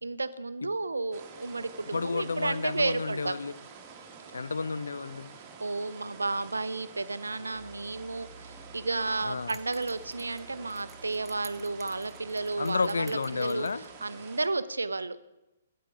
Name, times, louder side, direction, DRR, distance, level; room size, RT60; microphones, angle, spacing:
voice 1, 0.0-3.4 5.6-13.7 14.0-15.2, right 3 dB, 75° right, 0.5 m, -32 dB
sound 1, 1.1-14.5, right 5 dB, 30° right, 1.3 m, -49 dB
voice 2, 1.9-3.5 4.3-5.4 9.2-9.6 12.6-13.8, left 4 dB, 70° left, 0.4 m, -31 dB
Piano, 7.5-13.8, right 1 dB, 30° left, 2.8 m, -54 dB
sound 2, 9.5-13.9, right 5 dB, 10° right, 0.5 m, -54 dB
8.4 x 8.2 x 4.8 m
figure-of-eight pair, 125°, 0 cm